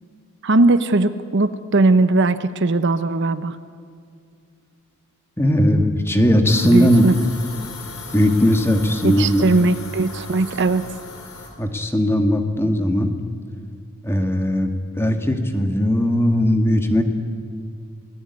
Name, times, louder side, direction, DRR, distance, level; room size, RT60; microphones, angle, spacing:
voice 1, 0.4-3.6 6.6-7.2 9.0-10.8, right 2 dB, 55° right, 12 dB, 0.8 m, -19 dB
voice 2, 5.4-7.1 8.1-9.4 11.6-13.1 14.0-14.7 15.0-17.0, equal, 10° left, 5 dB, 1.9 m, -18 dB
sound 1, 6.5-11.5, left 3 dB, 80° left, 4.8 m, -37 dB
26.5 x 18.0 x 9.7 m, 2.2 s
head